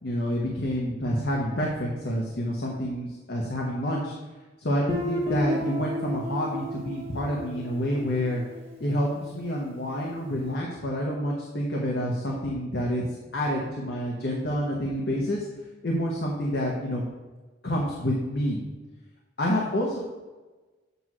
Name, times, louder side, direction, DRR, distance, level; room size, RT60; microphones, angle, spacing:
voice 1, 0.0-4.1 4.6-8.4 8.8-13.1 13.3-15.5 15.8-17.1 17.6-18.6 19.4-20.0, equal, 60° left, -2 dB, 1.0 m, -28 dB
Guitar, 4.9-9.6, left 1 dB, 30° right, 1.1 m, -34 dB
8.0 x 3.1 x 6.1 m, 1.2 s
head